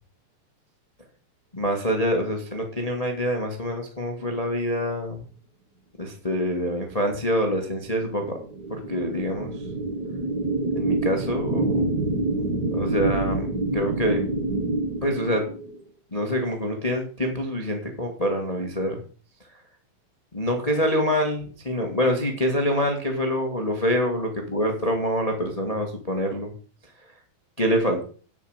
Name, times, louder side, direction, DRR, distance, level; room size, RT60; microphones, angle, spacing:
voice 1, 1.5-5.2 6.0-8.4 8.7-9.7 10.7-11.9 12.7-14.3 15.0-15.5 16.1-19.0 20.3-26.5 27.6-28.0, equal, 20° left, 3 dB, 1.1 m, -26 dB
sound 1, 7.2-15.8, right 2 dB, 55° right, 1.1 m, -27 dB
9.2 x 7.8 x 6.5 m, 0.40 s
omnidirectional pair, 4.1 m